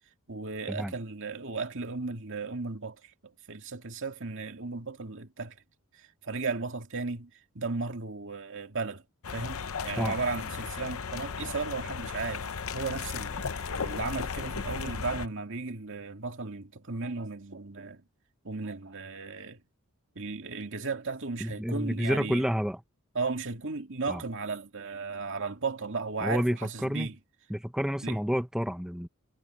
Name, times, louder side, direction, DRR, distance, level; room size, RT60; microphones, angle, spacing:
voice 1, 0.3-5.6 5.9-9.0 9.3-18.0 18.4-19.6 20.2-22.5 23.1-27.1 28.0-28.2, right 4 dB, 60° right, 2.3 m, -35 dB
sound 1, 9.2-15.3, left 5 dB, 65° left, 0.7 m, -35 dB
voice 2, 21.4-22.8 24.1-24.2 26.2-27.1 27.5-29.1, equal, 5° right, 1.0 m, -29 dB
head